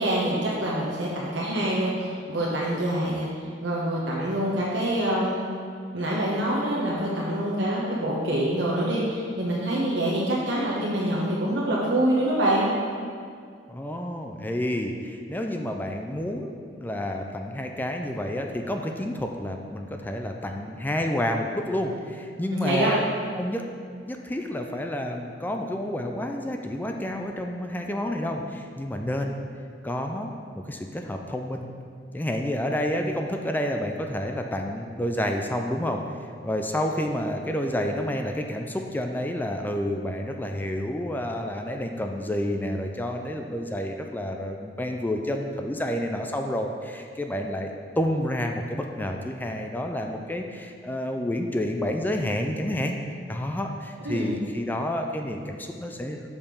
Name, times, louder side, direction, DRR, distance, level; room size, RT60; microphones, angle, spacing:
voice 1, 0.0-3.3 3.6-5.5 5.9-12.8 22.5-22.9 54.0-54.3, right 1 dB, 70° right, -6 dB, 1.2 m, -25 dB
voice 2, 13.7-23.0 23.4-23.7 24.1-29.4 29.8-31.7 32.1-36.0 36.4-47.7 48.0-56.2, left 1 dB, 10° left, 3 dB, 0.4 m, -29 dB
6.7 x 5.5 x 5.3 m, 2.2 s
head